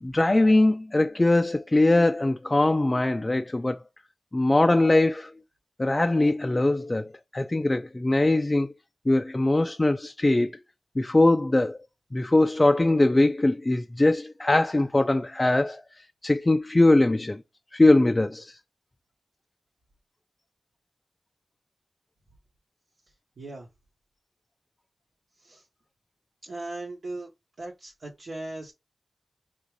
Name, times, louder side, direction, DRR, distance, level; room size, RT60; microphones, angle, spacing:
voice 1, 0.0-3.8 4.3-5.3 5.8-8.7 9.1-10.5 11.0-11.8 12.1-15.8 16.2-17.4 17.7-18.6, left 2 dB, 30° left, 0.3 m, -21 dB
voice 2, 23.4-23.7 25.4-25.6 26.4-27.3 27.6-28.7, right 2 dB, 75° right, 1.0 m, -38 dB
3.6 x 2.5 x 3.1 m
cardioid pair, 55°, 0 cm